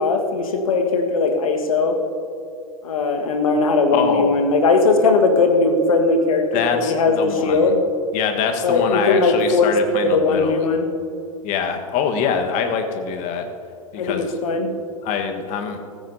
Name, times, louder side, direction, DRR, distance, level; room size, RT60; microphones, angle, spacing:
voice 1, 0.0-2.0 2.8-7.8 8.6-9.7 10.0-10.9 14.0-14.7, left 3 dB, 70° left, 5 dB, 1.5 m, -19 dB
voice 2, 3.9-4.4 6.5-7.7 8.1-10.7 11.4-13.5 13.9-14.4 15.0-15.8, left 6 dB, 40° left, 5 dB, 1.4 m, -24 dB
15.0 x 14.0 x 2.7 m, 2.5 s
figure-of-eight pair, 95°, 19 cm